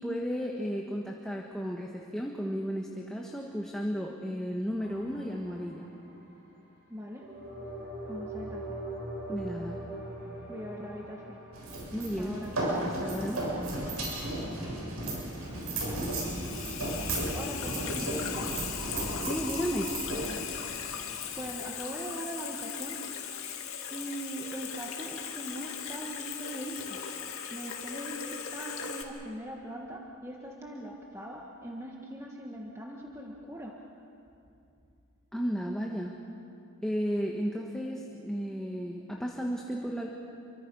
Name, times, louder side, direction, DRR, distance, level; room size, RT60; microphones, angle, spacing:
voice 1, 0.0-5.9 9.3-9.8 11.9-12.4 12.8-13.4 19.1-19.9 35.3-36.2 36.8-40.1, equal, 5° left, -1 dB, 1.4 m, -33 dB
sound 1, 4.8-6.5 7.2-13.1, right 1 dB, 50° right, 5.8 m, -42 dB
voice 2, 6.9-7.3 8.1-8.8 10.5-11.4 12.1-12.5 17.3-18.5 21.3-23.0 23.9-27.0 27.5-33.8, equal, 15° right, -1 dB, 1.5 m, -41 dB
sound 2, 11.5-21.5, right 1 dB, 85° right, 7.5 m, -34 dB
Water tap faucet / Sink (filling or washing), 15.4-29.0, left 7 dB, 70° left, 2.2 m, -38 dB
29.5 x 24.5 x 5.5 m, 2.6 s
head